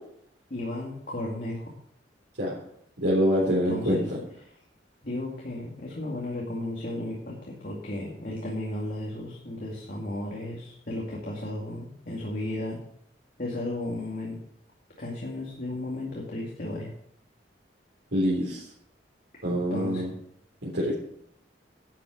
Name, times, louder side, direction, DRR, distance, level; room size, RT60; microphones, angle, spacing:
voice 1, 0.5-1.6 3.6-4.1 5.0-12.8 13.4-14.4 15.0-16.9 19.7-20.0, left 1 dB, 50° left, -3 dB, 2.3 m, -34 dB
voice 2, 3.0-4.0 18.1-18.6 19.4-20.1 20.6-20.9, equal, 90° right, -6 dB, 3.7 m, -25 dB
11.5 x 7.5 x 6.4 m, 0.70 s
head